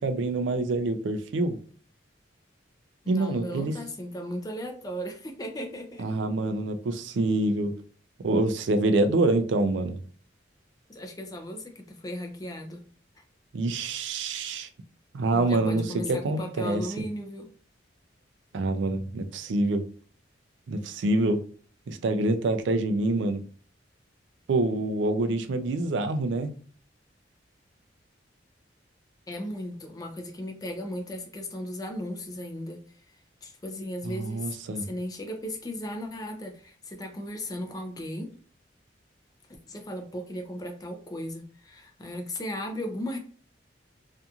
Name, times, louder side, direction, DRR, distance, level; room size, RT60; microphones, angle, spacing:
voice 1, 0.0-1.6 3.1-3.8 6.0-7.7 8.2-10.0 13.5-14.7 15.1-16.8 18.5-19.9 20.7-21.4 21.9-23.4 24.5-26.5 34.0-34.9, right 2 dB, 75° right, 0.4 m, -26 dB
voice 2, 3.0-6.1 10.9-12.8 15.3-17.5 29.3-32.8 33.4-38.3 39.7-43.2, equal, 20° left, 0.5 m, -36 dB
2.8 x 2.5 x 2.3 m
head